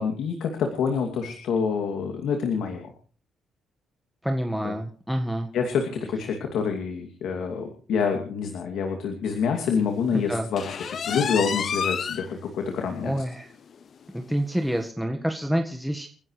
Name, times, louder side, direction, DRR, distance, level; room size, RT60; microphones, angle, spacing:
voice 1, 0.0-2.9 4.6-4.7 5.5-13.1, left 6 dB, 80° left, 3 dB, 2.6 m, -27 dB
voice 2, 4.2-5.5 10.1-10.5 13.0-13.5 14.1-16.1, equal, ahead, 3 dB, 1.5 m, -27 dB
sound 1, 10.6-12.3 12.7-12.8 13.2-13.3 13.7-13.8 14.8-14.9, left 7 dB, 55° left, 0.7 m, -29 dB
30.0 x 10.5 x 3.3 m, 0.42 s
cardioid pair, 90°, 0 cm